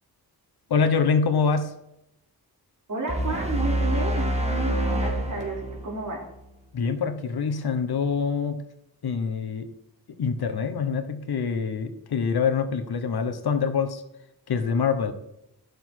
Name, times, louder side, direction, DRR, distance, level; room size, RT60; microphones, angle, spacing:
voice 1, 0.7-1.7 6.7-8.6 9.0-9.7 10.2-14.0 14.5-15.1, left 5 dB, 75° left, 8 dB, 1.2 m, -25 dB
voice 2, 2.9-6.2, right 3 dB, 50° right, -2 dB, 3.7 m, -32 dB
sound 1, 3.1-6.4, right 1 dB, 15° right, 1.6 m, -26 dB
12.5 x 6.5 x 4.6 m, 0.81 s
wide cardioid pair, 130°, 38 cm